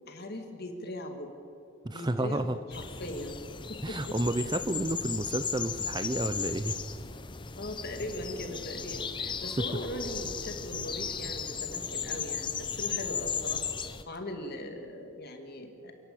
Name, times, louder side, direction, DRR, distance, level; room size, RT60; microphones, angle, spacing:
voice 1, 0.1-1.3 1.9-3.4 3.7-4.2 4.6-4.7 7.6-13.6 14.1-15.9, left 1 dB, 50° left, 5 dB, 2.3 m, -39 dB
voice 2, 1.8-2.6 3.8-6.8, right 1 dB, 20° right, 12 dB, 0.6 m, -31 dB
sound 1, 2.7-14.0, left 6 dB, 20° left, 0.7 m, -36 dB
28.5 x 11.0 x 8.6 m, 2.5 s
head